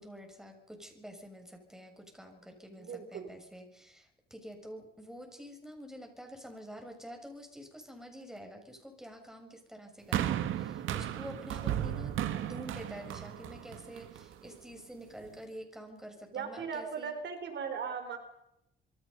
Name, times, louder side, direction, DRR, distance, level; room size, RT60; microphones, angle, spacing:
voice 1, 0.0-17.2, equal, 5° right, 4 dB, 7.4 m, -48 dB
voice 2, 2.8-3.3 16.3-18.2, right 6 dB, 65° right, 7 dB, 4.7 m, -38 dB
sound 1, 10.1-14.5 15.3-15.4, right 11 dB, 85° right, 2.0 m, -35 dB
27.5 x 23.5 x 5.6 m, 0.78 s
cardioid pair, 90°, 20 cm